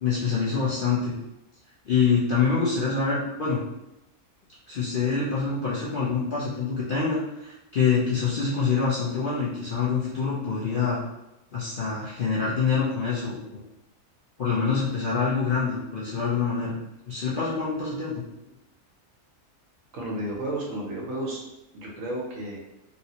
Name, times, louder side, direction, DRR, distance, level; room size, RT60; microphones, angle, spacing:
voice 1, 0.0-1.1 1.9-3.6 4.7-11.0 11.5-13.6 14.4-16.8 17.1-18.2, left 5 dB, 55° left, -8 dB, 0.6 m, -25 dB
voice 2, 19.9-21.4 21.7-22.6, right 1 dB, 65° right, -2 dB, 1.1 m, -32 dB
3.0 x 2.7 x 2.8 m, 0.91 s
omnidirectional pair, 1.5 m